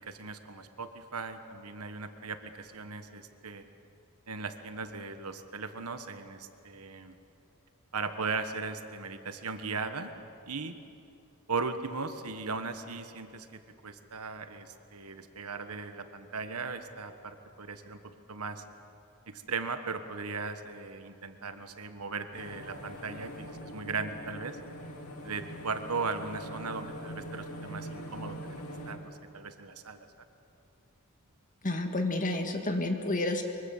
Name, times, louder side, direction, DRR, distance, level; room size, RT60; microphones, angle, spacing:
voice 1, 0.0-3.6 4.3-7.2 7.9-10.1 10.5-10.8 11.5-18.0 18.3-18.6 19.3-24.6 25.2-30.1, right 4 dB, 80° right, 8 dB, 1.5 m, -38 dB
sound 1, 22.3-29.0, equal, 85° left, 2.9 m, -43 dB
voice 2, 31.6-33.4, left 2 dB, 35° left, 4 dB, 2.1 m, -30 dB
24.0 x 23.0 x 7.4 m, 2.7 s
head